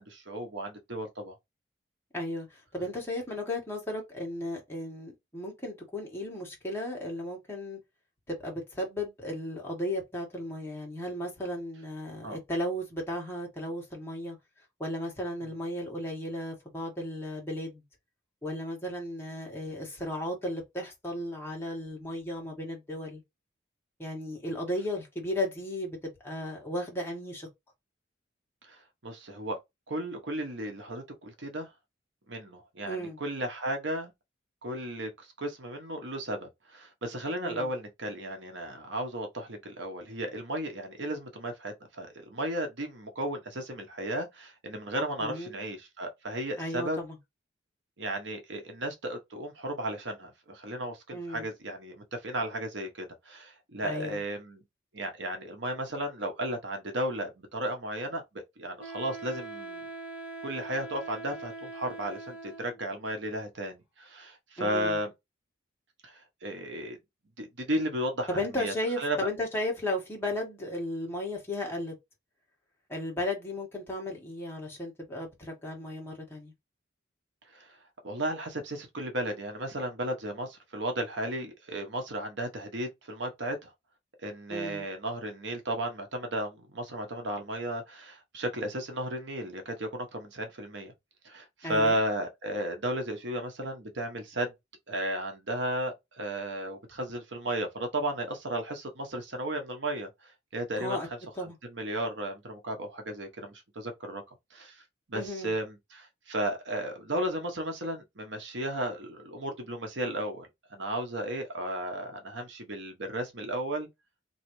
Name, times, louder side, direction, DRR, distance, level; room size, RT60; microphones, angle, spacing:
voice 1, 0.0-1.3 12.2-12.4 28.6-29.5 29.9-31.7 32.3-34.1 34.6-47.0 48.0-54.6 54.9-59.9 60.4-65.1 66.0-67.0 67.4-69.2 77.5-77.8 78.0-83.7 84.2-90.9 91.2-94.5 94.9-101.0 101.4-104.2 104.5-104.8 105.1-113.9, right 1 dB, 70° right, 1.1 m, -34 dB
voice 2, 2.1-7.8 8.3-14.4 14.8-17.8 18.4-23.2 24.0-27.5 32.9-33.2 37.4-37.7 45.2-45.6 46.6-47.2 51.1-51.5 53.8-54.2 64.6-65.0 68.3-71.9 72.9-76.5 84.5-84.8 91.6-92.0 100.8-101.1 101.3-101.5 105.1-105.5, left 1 dB, 10° left, 1.7 m, -35 dB
Wind instrument woodwind instrument, 58.8-62.9, right 3 dB, 5° right, 1.7 m, -42 dB
4.1 x 3.1 x 3.1 m
head